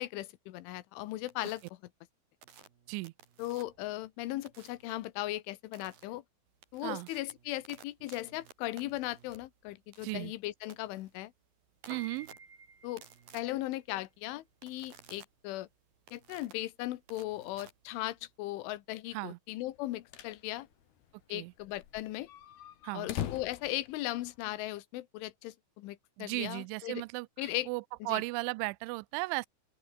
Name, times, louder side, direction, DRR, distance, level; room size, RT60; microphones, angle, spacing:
voice 1, 0.0-1.8 3.4-6.2 6.7-11.3 12.8-13.0 13.3-15.7 16.1-20.7 21.3-22.3 22.9-27.0 27.4-27.7 28.0-28.2, left 16 dB, 80° left, 3.6 m, -38 dB
sound 1, 1.3-1.7 2.4-3.9 4.5-4.9 5.7-6.0 6.5-18.4, right 8 dB, 50° right, 4.2 m, -57 dB
voice 2, 10.0-10.3 11.9-12.3 19.1-19.4 21.3-21.5 22.8-23.1 26.2-29.5, right 25 dB, 80° right, 2.9 m, -36 dB
Piano, 11.7-22.1, right 4 dB, 25° right, 4.7 m, -55 dB
sound 2, 19.8-20.4 20.7-20.8 21.0-21.1 21.6-24.6, left 11 dB, 60° left, 3.5 m, -41 dB
open air
omnidirectional pair, 5.6 m